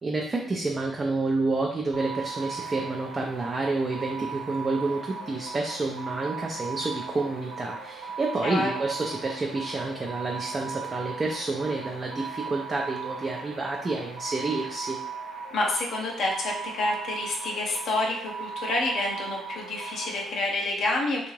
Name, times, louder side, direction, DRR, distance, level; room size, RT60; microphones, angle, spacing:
voice 1, 0.0-15.0, right 3 dB, 35° right, 0 dB, 0.4 m, -29 dB
sound 1, 1.9-20.3, right 5 dB, 65° right, 0.9 m, -37 dB
voice 2, 8.4-8.8 15.5-21.3, left 2 dB, 65° left, -1 dB, 0.5 m, -28 dB
2.6 x 2.4 x 3.1 m, 0.65 s
hypercardioid pair, 45°, 0 cm